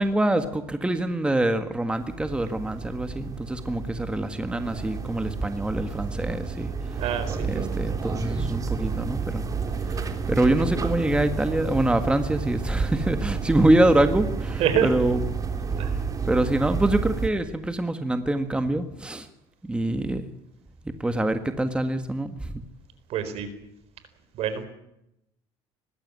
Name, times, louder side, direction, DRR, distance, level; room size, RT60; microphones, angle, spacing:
voice 1, 0.0-6.7 7.5-9.4 9.9-10.0 10.3-15.2 16.2-19.3 19.6-20.2 21.0-22.5, right 1 dB, 10° right, 8 dB, 1.6 m, -25 dB
sound 1, 1.9-17.3, right 5 dB, 30° right, 3.3 m, -30 dB
voice 2, 7.0-7.7 14.6-14.9 15.8-15.9 23.1-23.5 24.3-24.7, right 8 dB, 65° right, 11 dB, 4.3 m, -26 dB
20.5 x 15.0 x 9.8 m, 0.83 s
cardioid pair, 115°, 11 cm